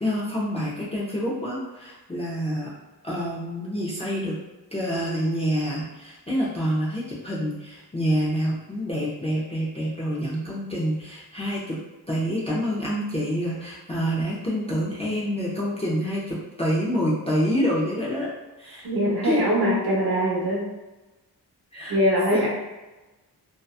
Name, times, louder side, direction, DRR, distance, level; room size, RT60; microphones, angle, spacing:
voice 1, 0.0-2.7 3.0-4.4 4.7-11.8 12.1-18.3 18.6-18.9 19.2-19.4 21.7-22.0 22.3-22.5, equal, 15° left, -7 dB, 0.3 m, -27 dB
voice 2, 18.8-20.6 21.9-22.5, equal, 65° right, -4 dB, 0.9 m, -22 dB
2.6 x 2.1 x 2.3 m, 1.1 s
wide cardioid pair, 160°, 40 cm